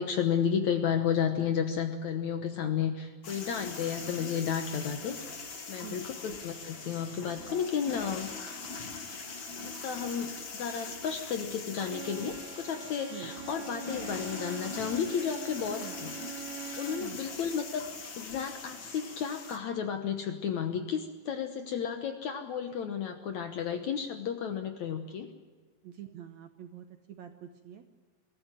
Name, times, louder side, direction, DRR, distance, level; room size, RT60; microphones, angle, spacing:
voice 1, 0.0-8.3 9.6-16.1 16.5-17.9 18.2-25.3, left 7 dB, 65° left, 7 dB, 1.8 m, -32 dB
sound 1, 3.2-19.6, left 4 dB, 40° left, 2.1 m, -42 dB
Bowed string instrument, 11.8-17.3, right 9 dB, 55° right, 2.1 m, -44 dB
voice 2, 25.8-27.9, right 11 dB, 75° right, 7 dB, 1.6 m, -46 dB
23.0 x 14.0 x 8.9 m, 1.5 s
omnidirectional pair, 4.7 m